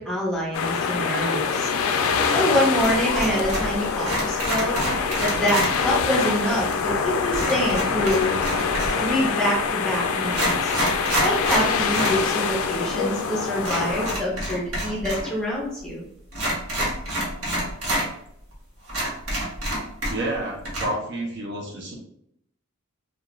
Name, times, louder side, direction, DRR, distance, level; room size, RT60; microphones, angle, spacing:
voice 1, 0.0-1.7 2.3-4.8 5.2-8.3 9.0-10.7 11.2-16.0, equal, 5° left, -5 dB, 0.7 m, -26 dB
sound 1, 0.5-14.2, left 5 dB, 70° left, 0.3 m, -25 dB
sound 2, 2.8-3.8 4.0-5.7 7.3-9.1 9.8-9.9 10.3-12.2 12.5-12.6 13.6-15.3 15.5-15.6 16.3-18.1 18.5-18.6 18.9-20.4 20.6-20.9, right 1 dB, 75° right, 1.1 m, -27 dB
voice 2, 20.1-21.9, right 1 dB, 55° right, 0 dB, 0.6 m, -29 dB
2.4 x 2.3 x 3.0 m, 0.73 s
head